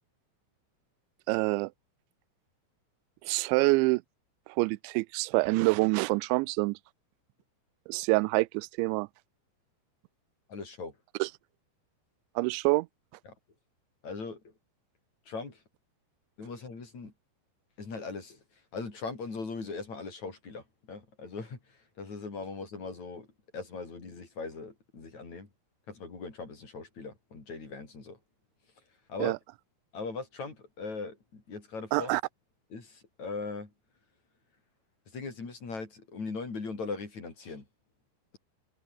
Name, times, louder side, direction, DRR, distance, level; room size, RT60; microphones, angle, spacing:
voice 1, 1.3-1.7 3.2-4.0 4.5-6.8 7.9-9.1 11.2-11.3 12.4-12.9 29.2-29.4 31.9-32.2, right 25 dB, 90° right, 2.9 m, -26 dB
voice 2, 10.5-11.0 13.3-13.4 14.0-14.5 15.3-15.6 16.4-17.1 17.8-18.4 18.7-23.3 23.5-25.5 25.9-28.2 29.1-29.4 29.9-32.2 32.7-33.7 35.1-37.6, left 4 dB, 40° left, 6.2 m, -40 dB
omnidirectional pair, 5.1 m